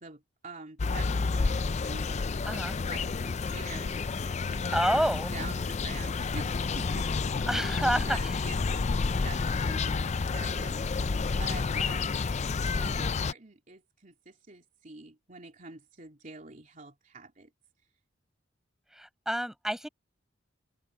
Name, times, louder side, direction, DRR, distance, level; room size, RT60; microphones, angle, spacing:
voice 1, 0.0-2.3 2.5-2.6 2.9-7.3 7.6-7.7 8.0-8.9 9.2-11.1 11.4-12.2 12.8-17.5, right 3 dB, 40° right, 3.2 m, -46 dB
sound 1, 0.8-13.3, left 4 dB, 35° left, 0.4 m, -30 dB
voice 2, 2.4-2.8 4.7-5.3 7.5-8.4 18.9-19.9, equal, ahead, 6.6 m, -29 dB
head